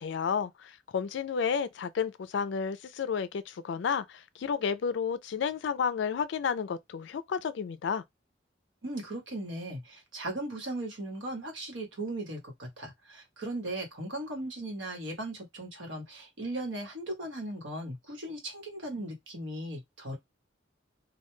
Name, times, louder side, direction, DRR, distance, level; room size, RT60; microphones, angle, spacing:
voice 1, 0.0-8.0, left 6 dB, 70° left, 0.4 m, -31 dB
voice 2, 8.8-20.2, right 1 dB, 85° right, 1.1 m, -37 dB
2.2 x 2.2 x 3.0 m
head